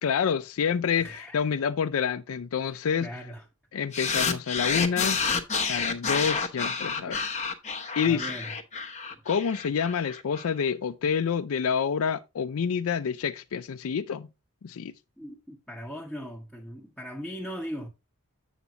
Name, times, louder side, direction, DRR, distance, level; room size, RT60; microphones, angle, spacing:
voice 1, 0.0-3.1 3.7-5.2 5.7-7.2 8.0-8.3 9.3-14.3 14.6-14.9, left 7 dB, 65° left, 0.4 m, -28 dB
voice 2, 1.0-1.4 3.0-3.4 7.1-7.2 8.0-8.5 9.1-9.2 15.2-17.9, equal, ahead, 1.0 m, -39 dB
sound 1, 3.9-10.5, left 5 dB, 35° left, 0.8 m, -29 dB
8.2 x 7.2 x 2.7 m
head